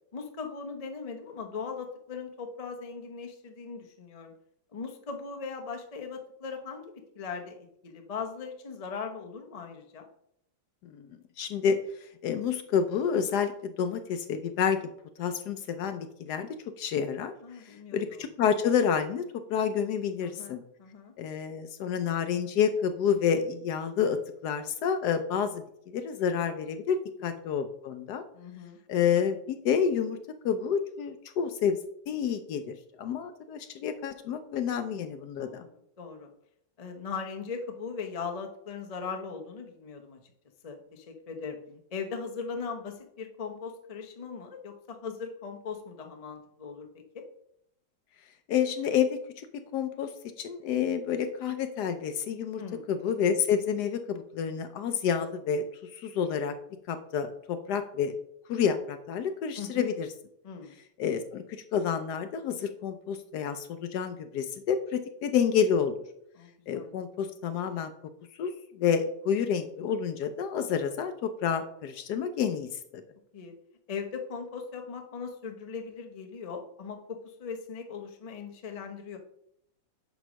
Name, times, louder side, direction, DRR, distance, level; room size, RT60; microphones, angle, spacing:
voice 1, 0.1-4.3 4.7-10.1 17.4-18.3 20.2-21.1 27.2-27.3 28.3-28.8 35.4-35.7 36.0-36.3 36.8-40.2 40.6-41.6 41.9-47.2 52.6-52.8 59.6-59.9 60.4-60.7 66.4-66.9 73.3-73.5 73.9-79.2, left 5 dB, 50° left, 3 dB, 0.4 m, -39 dB
voice 2, 11.4-11.8 12.2-14.8 15.2-16.5 16.8-17.3 17.6-19.2 19.5-20.6 21.2-24.2 24.4-28.2 28.9-30.2 30.4-31.8 32.1-35.7 48.5-49.5 49.7-50.1 50.4-52.6 52.9-55.6 55.9-56.5 56.9-58.2 58.5-60.1 61.0-66.0 66.7-67.9 68.4-72.7 72.9-73.0, left 7 dB, 70° left, 9 dB, 1.0 m, -29 dB
8.9 x 3.1 x 6.2 m, 0.73 s
omnidirectional pair, 2.1 m